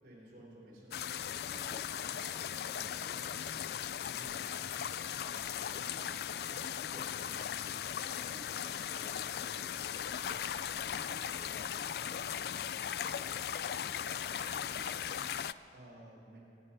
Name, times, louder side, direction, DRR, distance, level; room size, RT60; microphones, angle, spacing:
voice 1, 0.0-1.0 4.1-4.4 6.9-7.1 15.7-16.4, right 1 dB, 55° right, -5 dB, 4.6 m, -53 dB
sound 1, 0.9-15.5, left 9 dB, 65° left, 0.3 m, -38 dB
voice 2, 1.5-3.5 5.1-6.1 8.0-9.5 10.7-15.0, equal, 5° right, -4 dB, 2.4 m, -57 dB
sound 2, 5.1-11.9, equal, 15° left, 2.9 m, -61 dB
24.5 x 9.1 x 5.6 m, 2.8 s
head